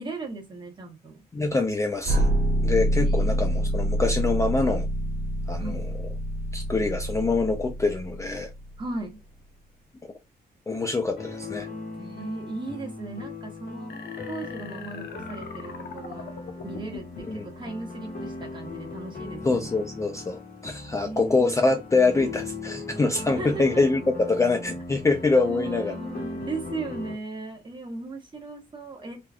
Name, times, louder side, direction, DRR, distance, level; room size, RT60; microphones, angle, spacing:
voice 1, 0.0-1.2 3.0-3.6 5.6-5.9 8.8-9.2 12.0-14.0 14.3-16.3 16.6-19.7 21.0-21.8 23.4-23.8 25.3-29.2, right 3 dB, 30° right, 0.8 m, -37 dB
voice 2, 1.3-2.3 2.6-4.9 5.5-5.9 6.5-8.5 10.7-11.7 17.3-17.4 19.4-26.0, left 3 dB, 20° left, 0.3 m, -25 dB
sound 1, 2.0-9.0, right 1 dB, 65° right, 1.3 m, -26 dB
sound 2, 11.2-27.1, left 3 dB, 65° left, 1.6 m, -38 dB
sound 3, 13.9-17.4, left 6 dB, 85° left, 0.6 m, -42 dB
3.4 x 2.2 x 2.3 m
wide cardioid pair, 165°, 17 cm